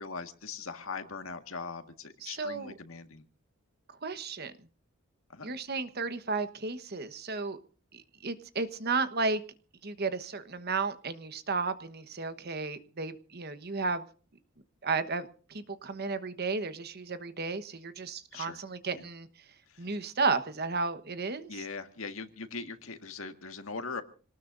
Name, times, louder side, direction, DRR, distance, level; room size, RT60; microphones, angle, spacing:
voice 1, 0.0-3.3 5.3-5.5 18.3-18.6 18.9-19.1 19.7-19.9 21.5-24.0, left 4 dB, 80° left, 7 dB, 1.8 m, -40 dB
voice 2, 2.2-2.7 4.0-4.5 5.4-7.6 7.9-9.4 9.8-14.0 14.8-19.3 19.8-21.6, right 4 dB, 50° right, 11 dB, 1.2 m, -33 dB
26.5 x 19.0 x 2.6 m, 0.40 s
head